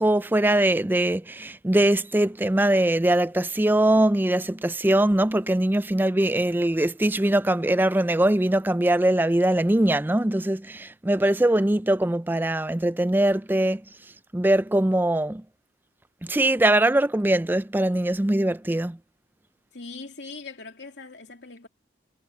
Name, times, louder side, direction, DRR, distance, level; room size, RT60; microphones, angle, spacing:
voice 1, 0.0-13.8 14.3-15.4 16.2-19.0, right 1 dB, 10° right, 0.4 m, -22 dB
voice 2, 19.7-21.7, left 3 dB, 70° left, 2.9 m, -41 dB
head